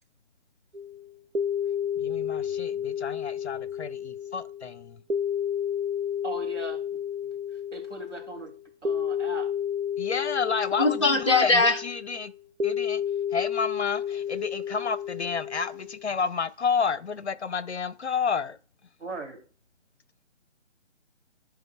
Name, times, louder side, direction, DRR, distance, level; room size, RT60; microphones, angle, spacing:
sound 1, 0.7-16.1, left 8 dB, 65° right, 0.8 m, -31 dB
voice 1, 2.0-5.0 10.0-12.3 12.6-13.0 13.3-18.6, left 5 dB, 65° left, 0.7 m, -30 dB
voice 2, 6.2-7.0 7.5-8.5 8.8-9.5 19.0-19.4, right 3 dB, 80° right, 2.6 m, -39 dB
voice 3, 10.8-11.8, left 3 dB, 25° left, 0.9 m, -21 dB
11.5 x 4.8 x 2.2 m
figure-of-eight pair, 150°, 35 cm